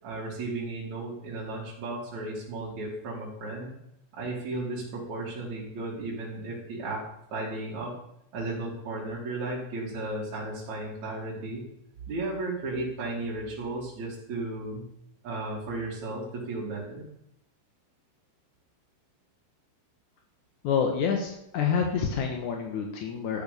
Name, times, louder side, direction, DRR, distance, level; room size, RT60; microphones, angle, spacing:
voice 1, 0.0-3.7 4.1-7.0 7.3-7.9 8.3-11.6 12.1-14.9 15.2-17.1, right 2 dB, 40° right, -6 dB, 3.9 m, -34 dB
voice 2, 20.6-23.4, left 6 dB, 70° left, 3 dB, 1.9 m, -28 dB
13.0 x 9.5 x 6.9 m, 0.79 s
omnidirectional pair, 5.4 m